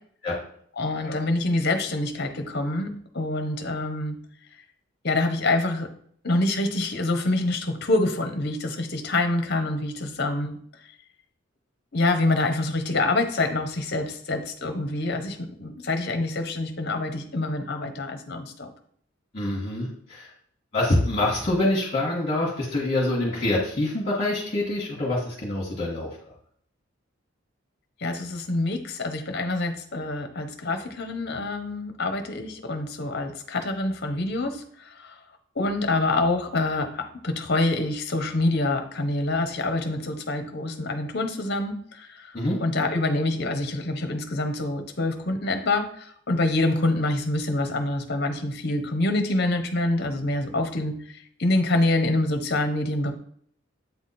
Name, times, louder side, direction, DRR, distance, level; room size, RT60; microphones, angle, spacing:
voice 1, 0.8-4.2 5.0-5.9 6.2-10.6 11.9-18.7 28.0-35.2 35.6-42.3 42.6-50.9 51.4-53.1, left 2 dB, 50° left, 7 dB, 0.8 m, -26 dB
voice 2, 19.3-20.3 20.7-26.1 42.3-42.6, left 1 dB, 30° left, -5 dB, 1.6 m, -25 dB
8.2 x 3.4 x 4.3 m, 0.62 s
head